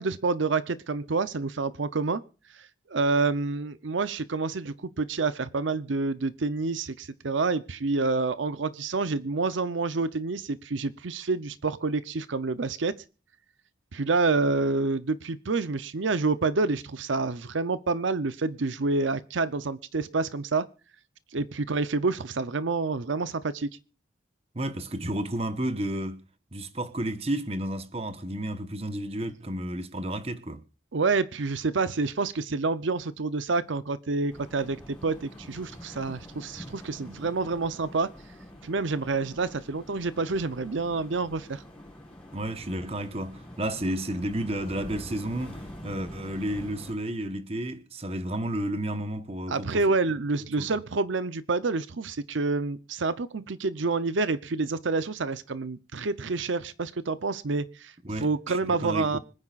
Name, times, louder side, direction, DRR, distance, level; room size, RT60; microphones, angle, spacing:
voice 1, 0.0-2.2 2.5-13.0 13.9-20.7 21.3-23.7 30.9-38.1 38.6-41.6 49.5-59.2, right 3 dB, 80° right, 0.7 m, -28 dB
voice 2, 24.5-26.2 26.5-30.6 42.3-49.8 50.6-50.7 58.0-59.2, right 1 dB, 30° right, 1.1 m, -32 dB
sound 1, 34.3-46.9, left 1 dB, 5° left, 5.4 m, -45 dB
25.5 x 9.6 x 2.5 m
head